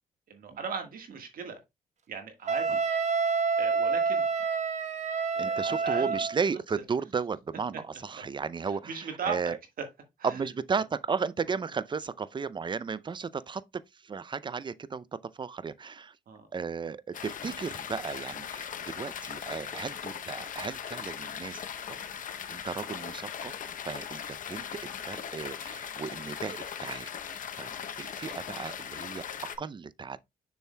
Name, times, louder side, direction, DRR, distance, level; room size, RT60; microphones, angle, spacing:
voice 1, 0.3-1.6 2.1-2.8 3.6-4.3 5.3-6.2 8.7-9.9 10.2-10.4 11.5-11.6 16.3-16.5 27.7-27.8, right 6 dB, 70° right, 1.6 m, -38 dB
Wind instrument woodwind instrument, 2.5-6.4, right 5 dB, 50° right, 1.1 m, -28 dB
voice 2, 5.4-9.0 9.3-9.6 10.3-13.6 14.1-15.0 15.4-16.1 16.5-21.6 22.5-23.5 23.8-24.2 24.5-27.1 27.6-27.7 28.0-30.2, right 5 dB, 30° right, 0.5 m, -34 dB
sound 1, 17.1-29.6, left 8 dB, 60° left, 0.7 m, -39 dB
6.8 x 6.2 x 2.2 m
cardioid pair, 65°, 15 cm